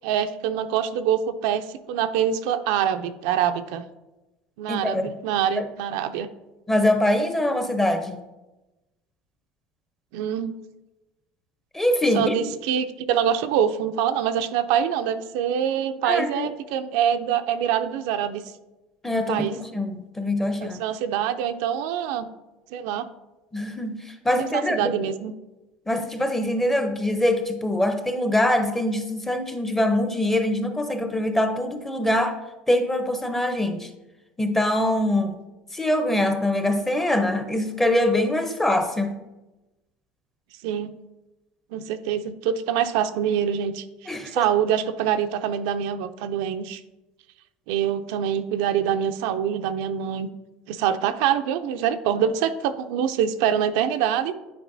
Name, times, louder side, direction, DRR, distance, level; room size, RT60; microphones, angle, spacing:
voice 1, 0.0-3.8 4.6-6.3 10.1-10.5 12.1-18.4 19.3-19.5 20.6-22.3 22.7-23.1 24.5-25.3 40.6-40.9 41.7-46.8 47.7-50.3 50.7-54.3, right 9 dB, 80° right, 9 dB, 0.4 m, -25 dB
voice 2, 4.7-5.1 5.6-5.7 6.7-8.2 11.7-12.4 16.0-16.5 19.0-20.8 23.5-24.9 25.9-32.4 32.7-33.9 34.4-35.3 35.7-39.2 44.1-44.4, left 1 dB, 10° left, 7 dB, 0.7 m, -23 dB
9.2 x 4.4 x 2.7 m, 1.0 s
supercardioid pair, 120°, 3 cm